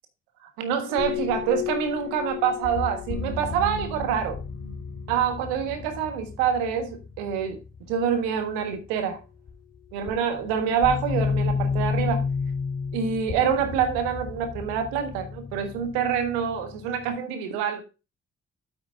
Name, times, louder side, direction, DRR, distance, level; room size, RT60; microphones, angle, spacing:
voice 1, 0.4-4.4 5.1-7.6 7.9-9.2 9.9-12.2 12.9-17.8, right 7 dB, 75° right, 1.5 m, -26 dB
sound 1, 0.9-7.8 9.5-9.6 10.1-17.2, left 5 dB, 45° left, 2.2 m, -31 dB
8.8 x 8.6 x 2.6 m
figure-of-eight pair, 40°, 36 cm